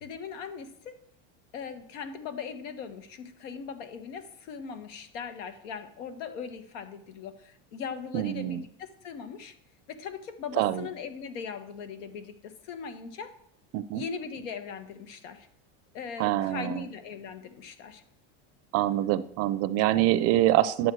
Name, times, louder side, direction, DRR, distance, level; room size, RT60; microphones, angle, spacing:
voice 1, 0.0-0.9 1.5-9.5 9.9-13.3 13.9-15.5 15.9-18.0, left 6 dB, 85° left, 9 dB, 1.4 m, -39 dB
voice 2, 8.1-8.6 10.6-10.9 13.7-14.0 16.2-16.8 18.7-20.9, right 14 dB, 40° right, 14 dB, 0.5 m, -25 dB
11.5 x 8.0 x 4.7 m, 0.70 s
cardioid pair, 160°, 36 cm